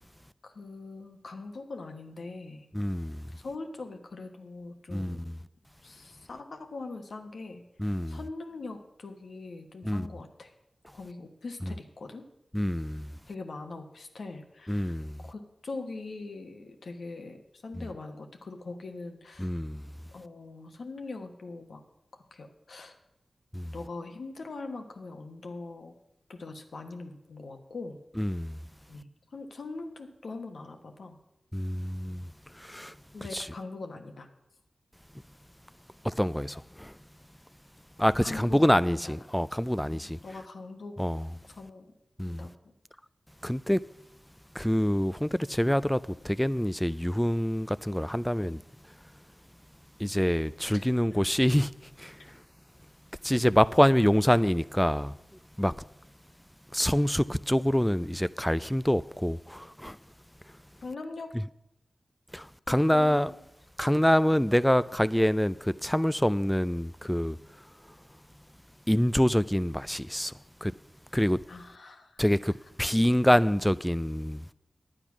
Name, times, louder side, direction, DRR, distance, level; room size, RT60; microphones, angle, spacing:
voice 1, 0.4-2.7 3.4-5.4 5.8-10.5 10.9-12.3 13.3-19.5 20.1-21.8 22.3-23.0 23.7-25.9 26.3-28.0 28.9-31.2 33.1-34.3 38.2-39.2 39.8-41.0 41.4-41.8 42.2-42.7 50.7-50.8 51.1-51.2 60.8-61.3 62.7-63.4 71.5-72.2, left 3 dB, 80° left, 1.2 m, -42 dB
voice 2, 2.7-3.3 4.9-5.4 7.8-8.2 9.8-10.1 12.5-13.2 14.7-15.2 17.8-17.9 19.4-19.9 23.5-23.7 28.2-28.6 31.5-33.0 33.3-33.5 36.0-37.0 38.0-40.2 41.0-41.3 42.2-42.5 43.4-43.8 44.5-48.6 50.0-52.4 53.2-55.1 55.6-55.7 56.7-60.0 60.5-60.6 62.3-63.3 63.8-67.6 68.9-70.3 70.6-70.7 71.1-71.4 72.2-74.5, equal, 5° left, 0.3 m, -26 dB
10.0 x 8.9 x 6.0 m
cardioid pair, 45°, 0 cm